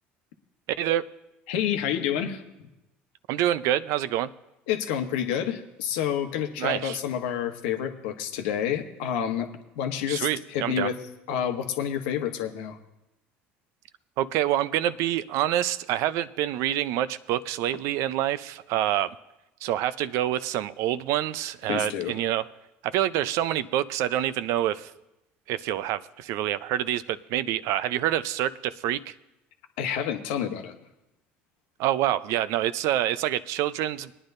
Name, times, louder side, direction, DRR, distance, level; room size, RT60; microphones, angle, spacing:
voice 1, 0.8-1.1 3.3-4.3 6.6-7.0 10.1-10.9 14.2-19.1 19.6-22.5 22.8-24.9 25.5-29.1 31.8-34.1, right 12 dB, 70° right, 16 dB, 0.5 m, -27 dB
voice 2, 1.5-2.4 4.7-9.5 9.8-11.0 11.3-12.8 21.7-22.2 29.8-30.7, left 9 dB, 80° left, 6 dB, 1.0 m, -29 dB
21.0 x 9.9 x 2.6 m, 0.93 s
hypercardioid pair, 75°, 5 cm